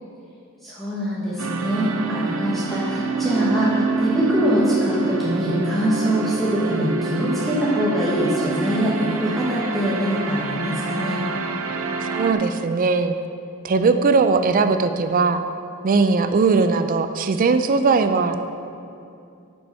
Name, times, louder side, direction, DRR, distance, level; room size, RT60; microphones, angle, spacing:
voice 1, 0.6-11.2, equal, ahead, -9 dB, 1.1 m, -23 dB
sound 1, 1.4-12.3, right 4 dB, 85° right, 0.6 m, -27 dB
voice 2, 12.1-13.1 13.6-15.4 15.8-18.4, right 4 dB, 40° right, 9 dB, 0.4 m, -19 dB
6.3 x 5.7 x 5.5 m, 2.6 s
head